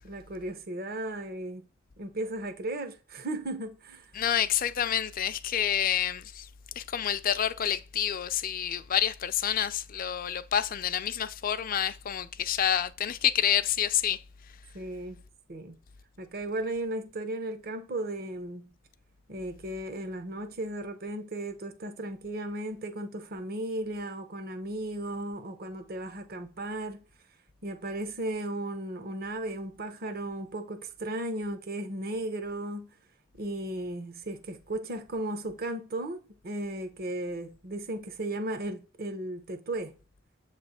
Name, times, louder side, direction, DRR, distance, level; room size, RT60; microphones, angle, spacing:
voice 1, 0.0-1.6 2.0-4.1 14.7-15.2 15.5-15.8 16.2-18.7 19.3-27.0 27.6-32.9 33.4-39.9, right 1 dB, 50° right, 0.9 m, -35 dB
voice 2, 4.1-6.5 6.8-14.2, left 9 dB, 45° left, 0.5 m, -28 dB
7.5 x 3.2 x 4.2 m
head